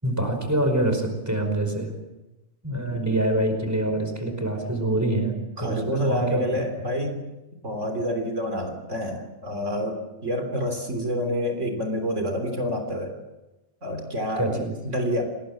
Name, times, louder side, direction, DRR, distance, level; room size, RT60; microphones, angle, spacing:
voice 1, 0.0-1.9 2.6-6.6 14.4-14.7, right 1 dB, 10° right, 5 dB, 5.1 m, -25 dB
voice 2, 5.6-7.2 7.6-13.2 13.8-15.2, equal, 60° right, 4 dB, 3.7 m, -28 dB
29.0 x 20.0 x 7.7 m, 1.0 s
omnidirectional pair, 1.4 m